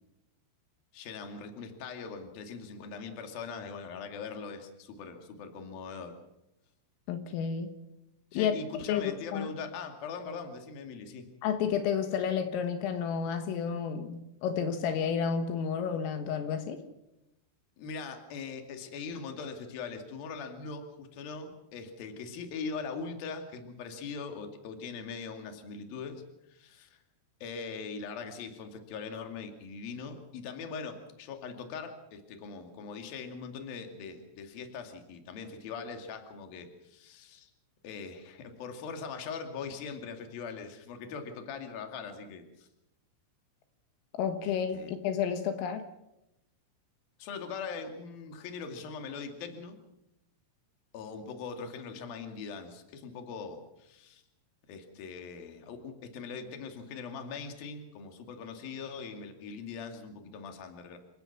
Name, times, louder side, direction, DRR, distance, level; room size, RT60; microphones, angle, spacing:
voice 1, 0.9-6.2 8.3-11.3 17.8-26.2 26.5-27.0 27.4-37.5 37.8-42.7 44.4-44.9 47.2-49.8 50.9-54.2 54.7-61.0, left 5 dB, 50° left, 5 dB, 3.8 m, -41 dB
voice 2, 7.1-7.7 8.4-8.6 8.9-9.5 11.4-16.8 44.2-45.8, left 7 dB, 80° left, 7 dB, 4.0 m, -31 dB
29.0 x 17.5 x 6.0 m, 0.88 s
omnidirectional pair, 6.0 m